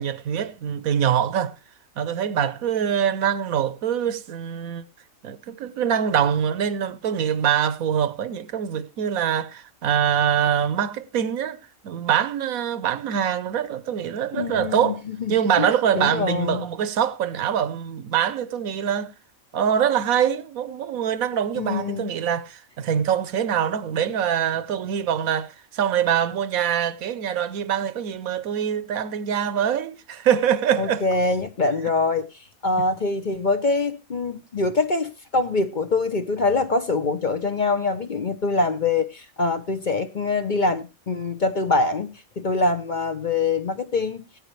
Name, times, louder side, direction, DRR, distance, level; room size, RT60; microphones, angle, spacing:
voice 1, 0.0-1.6 2.0-4.8 5.2-15.0 15.3-19.1 19.5-31.0 32.8-32.9, right 9 dB, 80° right, 1.2 m, -24 dB
voice 2, 14.3-15.7 15.9-16.6 21.5-22.1 30.8-32.3 32.6-44.2, left 3 dB, 40° left, 0.8 m, -24 dB
17.0 x 9.0 x 3.1 m
omnidirectional pair, 1.5 m